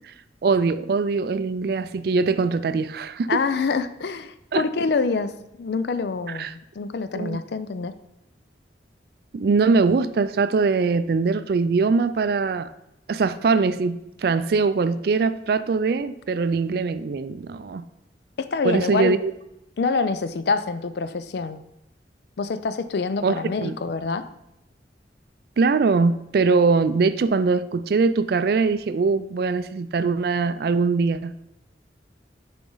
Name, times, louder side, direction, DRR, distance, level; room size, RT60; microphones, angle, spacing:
voice 1, 0.4-3.4 4.5-4.6 6.4-6.5 7.1-7.4 9.3-12.7 13.1-17.8 18.6-19.3 23.2-23.8 25.6-31.3, right 4 dB, 55° right, 13 dB, 0.3 m, -22 dB
voice 2, 3.3-7.9 18.4-19.2 19.8-21.6 22.4-24.3, left 4 dB, 65° left, 12 dB, 0.4 m, -26 dB
6.9 x 5.1 x 3.8 m, 0.87 s
head